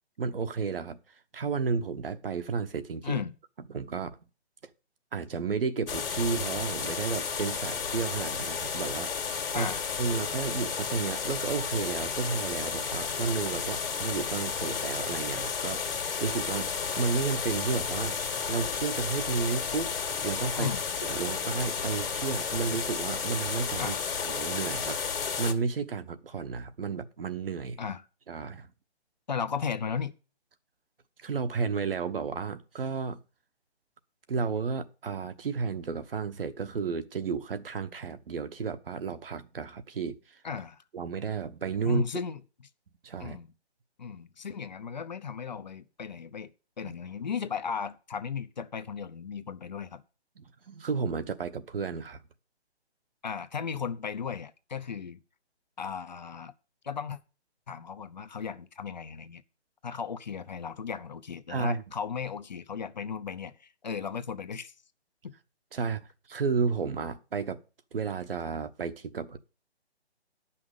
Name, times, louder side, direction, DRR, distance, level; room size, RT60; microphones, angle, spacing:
voice 1, 0.2-1.0 1.3-3.2 3.7-4.2 5.1-9.7 10.0-18.2 18.5-19.9 20.2-20.7 21.0-24.0 24.2-27.8 28.3-28.7 31.2-33.2 34.3-40.4 40.9-42.0 43.0-43.4 46.8-46.9 50.4-52.2 61.5-61.8 65.7-67.6 67.9-69.4, right 5 dB, 55° right, 1.1 m, -32 dB
voice 2, 3.0-3.4 9.5-9.8 20.5-20.8 23.8-24.0 27.8-28.0 29.3-30.2 40.4-40.8 41.8-42.4 43.2-43.5 44.0-50.0 53.2-55.2 55.8-56.5 56.8-57.2 57.7-59.4 59.8-64.7 65.2-65.3, left 6 dB, 40° left, 0.8 m, -36 dB
sound 1, 5.9-25.5, left 6 dB, 55° left, 1.9 m, -32 dB
10.5 x 5.8 x 6.5 m
hypercardioid pair, 170°, 33 cm